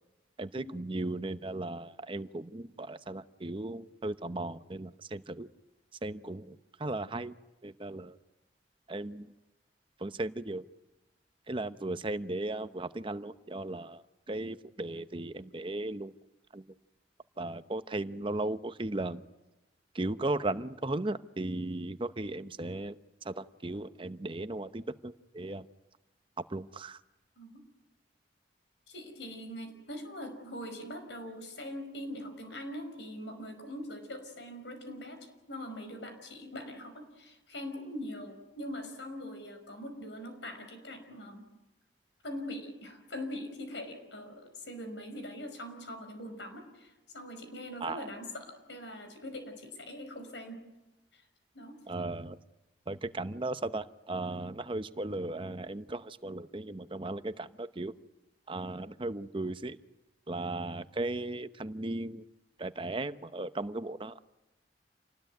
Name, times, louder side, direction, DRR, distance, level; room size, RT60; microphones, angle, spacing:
voice 1, 0.4-5.5 6.0-7.3 7.6-8.2 8.9-9.3 10.0-10.6 11.5-16.1 16.5-16.6 17.4-19.2 19.9-23.0 23.2-25.7 26.5-27.0 47.8-48.1 51.9-52.4 52.9-57.9 58.5-59.8 60.3-62.2 62.6-64.2, right 2 dB, 30° right, 12 dB, 0.8 m, -36 dB
voice 2, 28.9-41.4 42.2-50.6 51.1-51.2 51.5-51.8, left 1 dB, 85° left, 7 dB, 5.4 m, -42 dB
28.0 x 19.5 x 9.4 m, 1.0 s
head